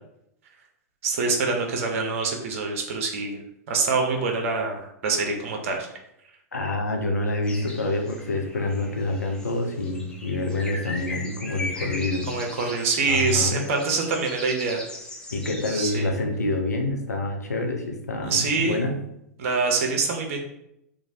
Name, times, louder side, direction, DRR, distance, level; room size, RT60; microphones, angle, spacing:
voice 1, 1.0-3.4 3.7-5.9 12.3-14.8 15.7-16.1 18.2-18.8 19.4-20.4, right 4 dB, 55° right, 2 dB, 0.7 m, -25 dB
voice 2, 6.5-12.3 13.0-13.6 15.3-19.0, left 2 dB, 85° left, 3 dB, 0.5 m, -27 dB
sound 1, 7.4-16.1, left 2 dB, 10° left, 0.6 m, -38 dB
3.0 x 2.5 x 2.6 m, 0.78 s
figure-of-eight pair, 95°, 9 cm